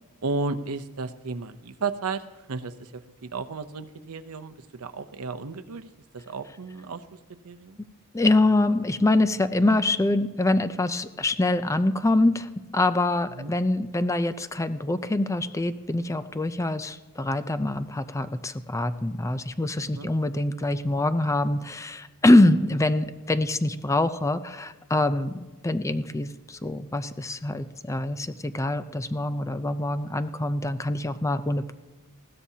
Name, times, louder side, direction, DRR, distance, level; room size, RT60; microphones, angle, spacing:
voice 1, 0.2-7.0 7.4-7.8 13.4-13.5 19.8-20.1, right 4 dB, 80° right, 9 dB, 0.7 m, -34 dB
voice 2, 8.1-31.7, left 2 dB, 15° left, 11 dB, 0.5 m, -24 dB
20.0 x 15.5 x 2.8 m, 1.2 s
head